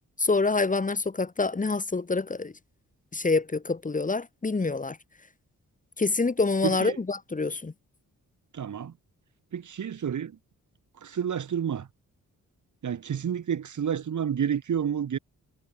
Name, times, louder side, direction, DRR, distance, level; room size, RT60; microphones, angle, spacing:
voice 1, 0.2-2.5 3.1-5.0 6.0-7.7, left 3 dB, 25° left, 4.4 m, -26 dB
voice 2, 6.6-7.0 8.5-8.9 9.5-10.4 11.0-11.9 12.8-15.2, right 8 dB, 70° right, 7.6 m, -30 dB
wide cardioid pair, 150°, 31 cm